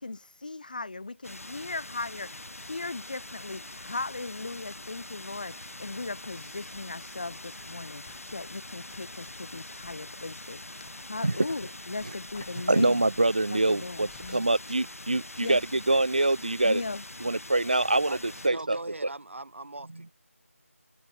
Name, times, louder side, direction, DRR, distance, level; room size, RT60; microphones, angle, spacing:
voice 1, 0.0-10.8 11.1-13.0 13.5-14.5 15.4-15.6 16.6-17.0, left 3 dB, 35° left, 0.9 m, -38 dB
sound 1, 1.2-18.5, left 2 dB, 70° left, 4.3 m, -44 dB
sound 2, 3.7-18.3, left 11 dB, 5° left, 0.7 m, -61 dB
voice 2, 12.7-16.8 17.2-18.2 18.4-18.8, right 2 dB, 35° right, 0.3 m, -25 dB
voice 3, 18.5-20.1, right 2 dB, 55° right, 2.8 m, -40 dB
figure-of-eight pair, 175°, 8 cm